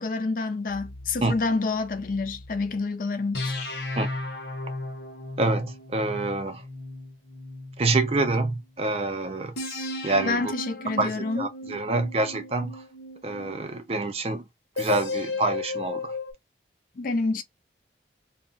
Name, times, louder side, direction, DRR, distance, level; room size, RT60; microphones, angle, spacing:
voice 1, 0.0-3.4 10.2-11.5 17.0-17.4, left 3 dB, 50° left, 0.4 m, -28 dB
sound 1, 0.7-2.7 3.3-8.6 9.6-13.8 14.8-16.3, left 2 dB, 65° left, 0.8 m, -35 dB
voice 2, 5.4-6.6 7.8-9.5 10.0-10.5 11.0-12.8 13.2-14.4 14.8-16.2, right 3 dB, 35° right, 0.4 m, -26 dB
2.2 x 2.1 x 3.7 m
head